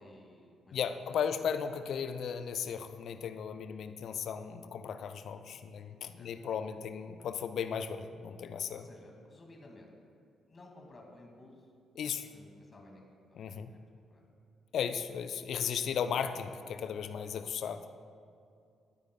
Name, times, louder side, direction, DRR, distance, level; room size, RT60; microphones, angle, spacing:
voice 1, 0.0-0.8 1.2-1.3 6.2-6.3 8.7-9.9 10.5-11.7 12.0-13.4 13.7-13.8 14.1-14.2, left 1 dB, 35° left, 1 dB, 2.0 m, -55 dB
voice 2, 0.7-8.9 12.0-12.3 13.4-13.7 14.7-17.8, left 7 dB, 55° left, 10 dB, 0.5 m, -36 dB
19.0 x 9.8 x 2.2 m, 2.4 s
figure-of-eight pair, 40°, 0 cm